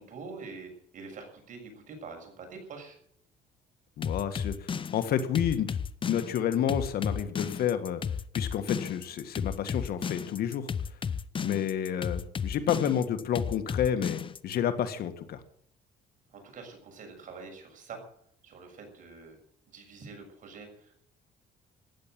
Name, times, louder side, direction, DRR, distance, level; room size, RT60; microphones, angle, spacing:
voice 1, 0.0-3.0 16.3-18.0 18.4-19.4 19.6-20.9, right 4 dB, 50° right, 3 dB, 6.9 m, -45 dB
voice 2, 4.0-8.0 8.3-10.7 11.4-15.4, left 9 dB, 65° left, 9 dB, 2.0 m, -30 dB
sound 1, 4.0-14.6, left 6 dB, 30° left, 0.7 m, -33 dB
15.0 x 10.0 x 9.2 m, 0.63 s
cardioid pair, 110°, 17 cm